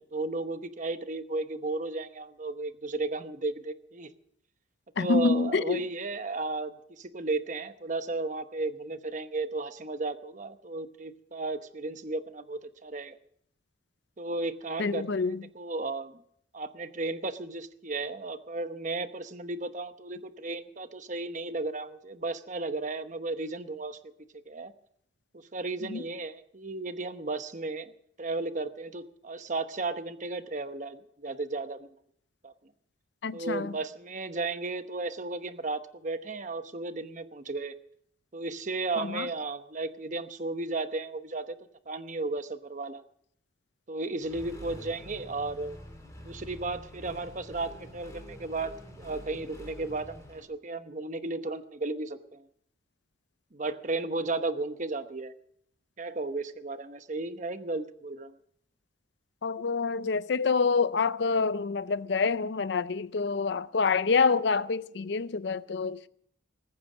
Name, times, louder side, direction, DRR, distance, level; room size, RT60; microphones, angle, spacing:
voice 1, 0.0-4.1 5.0-13.2 14.2-15.2 15.5-16.2 16.5-24.0 24.5-24.7 25.3-27.9 28.2-31.9 32.4-32.5 33.3-37.7 38.3-41.6 41.9-43.0 43.9-45.8 46.2-52.4 53.5-55.3 56.0-58.3, right 3 dB, 40° right, 0.9 m, -34 dB
voice 2, 5.0-5.8 14.8-15.4 25.9-26.0 33.2-33.7 39.0-39.3 59.4-66.1, left 4 dB, 60° left, 0.5 m, -27 dB
Accelerating revving vroom, 44.2-50.4, left 1 dB, 15° left, 2.6 m, -46 dB
20.5 x 9.4 x 6.3 m
head